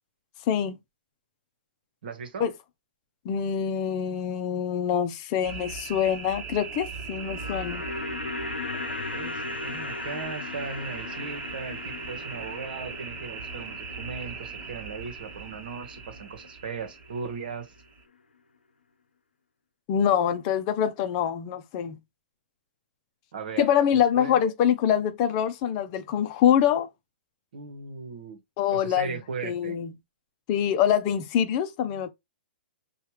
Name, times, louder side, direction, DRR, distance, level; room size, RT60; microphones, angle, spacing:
voice 1, 2.0-2.5 9.1-17.7 23.3-24.4 27.5-28.4 28.7-29.8, right 5 dB, 60° right, 1.1 m, -38 dB
voice 2, 3.2-7.8 19.9-22.0 23.6-26.9 28.6-29.9 30.5-32.1, left 9 dB, 35° left, 0.7 m, -25 dB
sound 1, 5.4-18.0, right 6 dB, 30° right, 1.4 m, -39 dB
sound 2, 7.0-17.2 17.5-17.6, left 4 dB, 80° left, 0.8 m, -38 dB
5.6 x 2.5 x 3.1 m
figure-of-eight pair, 120°, 6 cm